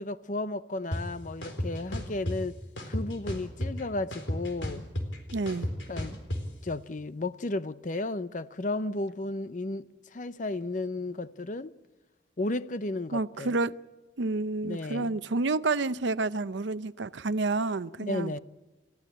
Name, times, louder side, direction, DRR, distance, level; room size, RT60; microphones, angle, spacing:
voice 1, 0.0-2.6 2.9-4.9 5.9-6.2 6.6-11.7 12.4-13.5 14.6-15.1 18.0-18.4, left 2 dB, 45° left, 0.7 m, -33 dB
sound 1, 0.9-1.0 1.4-2.4 2.8-3.8 4.1-6.4, left 1 dB, 85° left, 4.1 m, -32 dB
voice 2, 5.3-5.7 13.1-13.7 14.2-18.3, right 3 dB, 75° right, 0.7 m, -29 dB
29.0 x 14.5 x 8.7 m
head